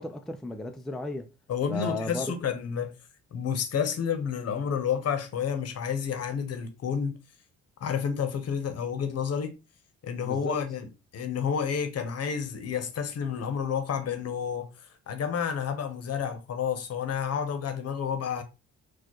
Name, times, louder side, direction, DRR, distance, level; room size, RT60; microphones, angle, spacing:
voice 1, 0.0-1.3 1.7-2.3 10.2-10.6, left 2 dB, ahead, 0.4 m, -34 dB
voice 2, 1.5-2.9 3.3-7.2 7.8-9.5 10.0-10.9 11.1-14.7 15.1-18.4, left 7 dB, 55° left, 0.8 m, -30 dB
4.3 x 2.4 x 3.0 m
cardioid pair, 90°, 30 cm